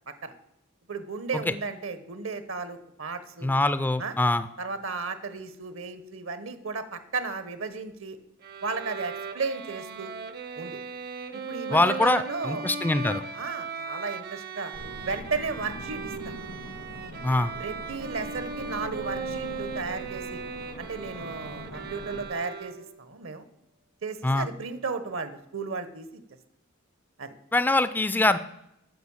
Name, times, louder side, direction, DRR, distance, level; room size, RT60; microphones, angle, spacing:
voice 1, 0.9-3.5 4.0-4.1 4.6-8.2 8.6-10.1 10.6-10.8 11.5-12.6 13.3-14.7 15.0-16.3 17.6-20.4 20.8-23.4 24.0-26.2 27.2-27.3, right 4 dB, 70° right, 12 dB, 1.0 m, -34 dB
voice 2, 3.4-4.5 11.7-13.2 17.2-17.5 24.2-24.5 27.5-28.4, left 2 dB, 10° left, 13 dB, 0.3 m, -23 dB
Bowed string instrument, 8.4-23.1, right 5 dB, 50° right, 0.7 m, -38 dB
sound 1, 14.7-22.3, left 1 dB, 85° left, 2.0 m, -42 dB
9.4 x 6.7 x 7.1 m, 0.80 s
head